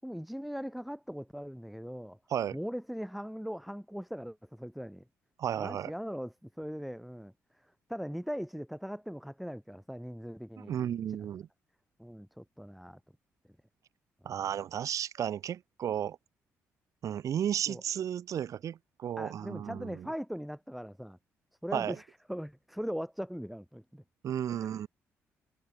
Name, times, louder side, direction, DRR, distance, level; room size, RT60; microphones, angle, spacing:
voice 1, 0.0-2.2 2.5-5.0 5.6-10.8 12.0-13.0 14.2-14.5 17.7-17.8 19.2-21.2 21.6-24.0 24.5-24.7, equal, ahead, 6.5 m, -40 dB
voice 2, 5.4-5.9 10.6-11.5 14.3-16.2 17.0-20.1 21.7-22.0 24.2-24.9, right 9 dB, 65° right, 2.1 m, -33 dB
supercardioid pair, 60°, 6 cm